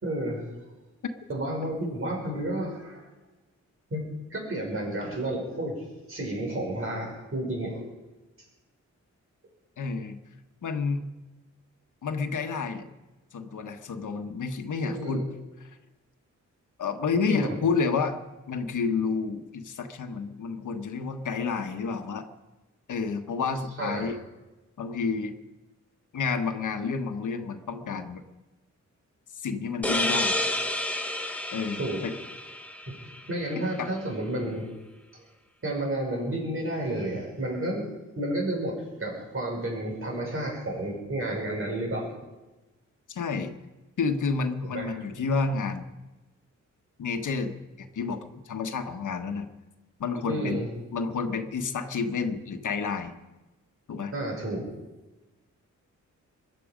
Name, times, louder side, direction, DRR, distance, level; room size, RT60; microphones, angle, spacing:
voice 1, 0.0-0.4 1.3-3.0 3.9-4.1 4.3-5.8 6.1-7.9 14.8-15.2 17.1-17.6 23.8-24.1 31.8-32.1 32.9-33.0 33.3-34.7 35.1-35.2 35.6-37.9 38.2-42.1 44.7-45.0 50.3-50.7 54.1-54.7, right 1 dB, 45° right, -1 dB, 5.7 m, -31 dB
voice 2, 9.8-10.2 10.6-11.0 12.0-12.9 13.3-15.2 16.8-18.2 18.5-22.3 22.9-24.2 24.8-25.3 26.1-28.2 29.4-30.4 31.5-32.1 33.8-33.9 34.4-34.6 43.1-43.5 44.0-45.8 47.0-49.5 50.0-50.6 50.9-53.1 53.9-54.1, left 5 dB, 80° left, 6 dB, 1.4 m, -30 dB
sound 1, 29.8-33.3, left 1 dB, 5° left, 1.3 m, -30 dB
22.5 x 11.5 x 5.2 m, 1.1 s
wide cardioid pair, 100°, 30 cm